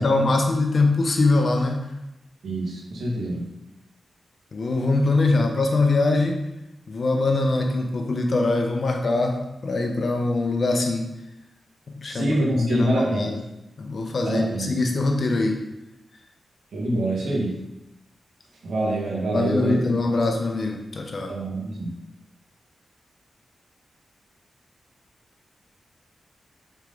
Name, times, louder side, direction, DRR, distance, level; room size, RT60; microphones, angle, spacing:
voice 1, 0.0-1.9 4.5-6.4 6.9-11.1 11.9-12.3 12.6-13.4 13.8-15.6 19.3-21.3, left 2 dB, 55° left, 3 dB, 1.0 m, -23 dB
voice 2, 2.4-3.5 12.1-13.3 14.2-14.7 16.7-17.5 18.6-19.8 21.3-22.0, right 1 dB, 80° right, -3 dB, 1.8 m, -25 dB
5.5 x 4.7 x 3.9 m, 0.91 s
cardioid pair, 80°, 0 cm